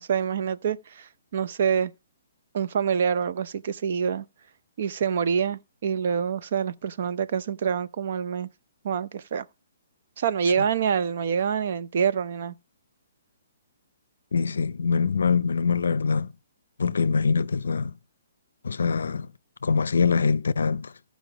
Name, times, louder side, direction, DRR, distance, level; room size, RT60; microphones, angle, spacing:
voice 1, 0.0-1.9 2.5-4.2 4.8-8.5 8.8-9.5 10.2-12.5, right 7 dB, 55° right, 0.6 m, -26 dB
voice 2, 14.3-16.3 16.8-17.9 18.6-19.3 19.6-20.9, left 5 dB, 80° left, 0.5 m, -24 dB
14.0 x 5.1 x 5.0 m
hypercardioid pair, 145°, 0 cm